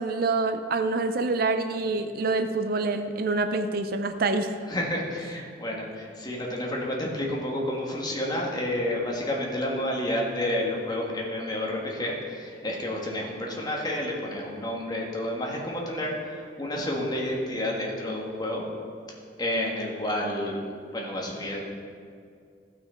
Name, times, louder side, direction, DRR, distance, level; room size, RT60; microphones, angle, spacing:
voice 1, 0.0-4.5, right 3 dB, 60° right, 9 dB, 0.5 m, -26 dB
voice 2, 4.7-18.6 19.4-20.6 20.9-21.6, left 1 dB, 25° left, -2 dB, 1.7 m, -30 dB
15.5 x 5.9 x 4.4 m, 2.3 s
head